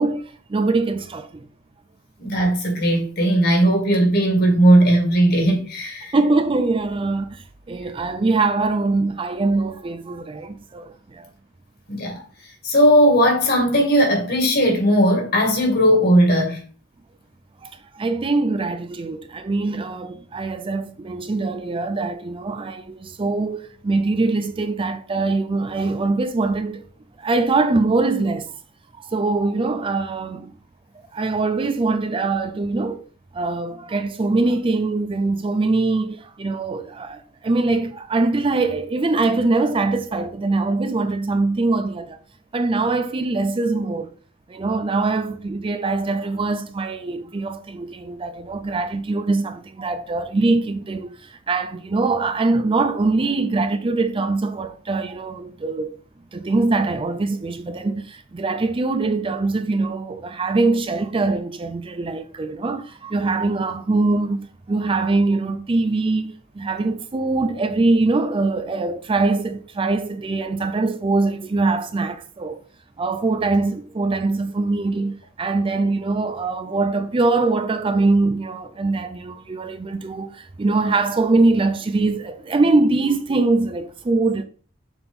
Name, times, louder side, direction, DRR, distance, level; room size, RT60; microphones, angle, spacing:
voice 1, 0.0-1.4 6.1-11.3 17.6-26.8 27.2-28.5 29.0-30.5 31.1-33.0 33.3-42.2 42.5-44.1 44.5-56.0 56.3-72.6 73.0-84.4, right 3 dB, 25° right, 0.4 m, -22 dB
voice 2, 2.2-6.1 11.9-12.2 12.6-16.6, equal, 55° left, 2.2 m, -17 dB
6.9 x 4.1 x 3.6 m
head